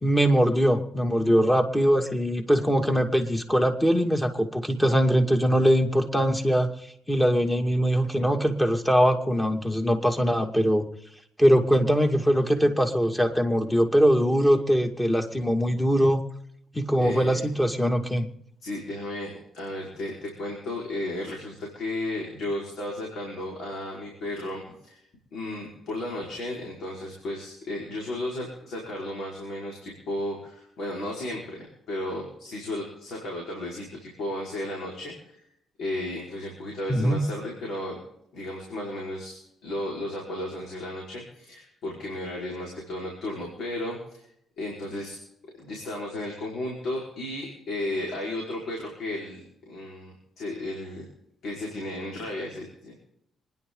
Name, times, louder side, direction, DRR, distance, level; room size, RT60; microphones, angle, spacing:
voice 1, 0.0-6.7 7.1-10.9 11.4-16.2 16.7-18.3 36.9-37.2, equal, 10° left, 4 dB, 2.4 m, -22 dB
voice 2, 17.0-17.4 18.6-25.0 25.3-35.4 35.8-38.0 38.3-44.2 44.6-45.2 45.6-51.0 51.4-52.9, left 1 dB, 70° left, -2 dB, 5.2 m, -34 dB
26.5 x 11.0 x 3.9 m, 0.75 s
cardioid pair, 90°, 0 cm